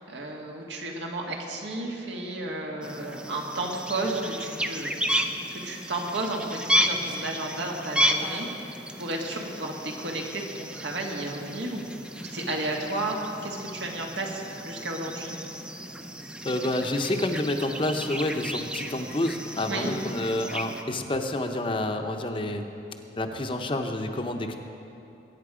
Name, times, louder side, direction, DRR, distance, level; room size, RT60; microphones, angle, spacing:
voice 1, 0.1-4.9 5.5-11.8 12.2-15.3 19.7-19.9, right 2 dB, 80° right, 0 dB, 1.9 m, -33 dB
sound 1, 2.8-20.8, equal, 5° right, 0.5 m, -33 dB
voice 2, 16.4-22.7 23.2-24.6, left 1 dB, 30° left, 5 dB, 0.7 m, -29 dB
21.0 x 9.0 x 5.0 m, 2.9 s
head